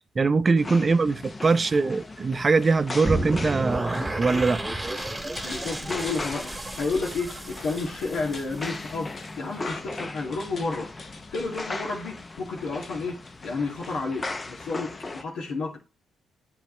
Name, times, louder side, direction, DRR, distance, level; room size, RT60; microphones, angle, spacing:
voice 1, 0.1-4.8, right 4 dB, 30° right, 0.6 m, -22 dB
sound 1, 0.6-15.2, left 2 dB, 25° left, 0.8 m, -38 dB
sound 2, 3.0-9.1, right 1 dB, 10° right, 1.6 m, -32 dB
sound 3, 4.7-13.8, left 4 dB, 45° left, 1.3 m, -45 dB
voice 2, 5.4-10.9 11.3-15.8, left 3 dB, 80° left, 2.7 m, -31 dB
10.5 x 4.7 x 3.3 m
cardioid pair, 90°, 0 cm